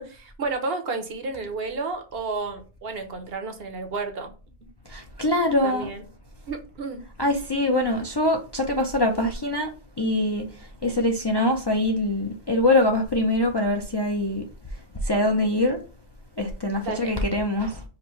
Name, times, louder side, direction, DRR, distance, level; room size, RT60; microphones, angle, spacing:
voice 1, 0.0-4.3 5.6-6.0 6.5-7.0 16.8-17.2, right 3 dB, 65° right, 1.0 m, -31 dB
voice 2, 4.9-5.9 7.2-9.7 10.0-10.4 10.8-14.4 15.0-15.8 16.4-17.8, left 1 dB, 30° left, 0.5 m, -23 dB
5.0 x 2.7 x 3.1 m
omnidirectional pair, 1.1 m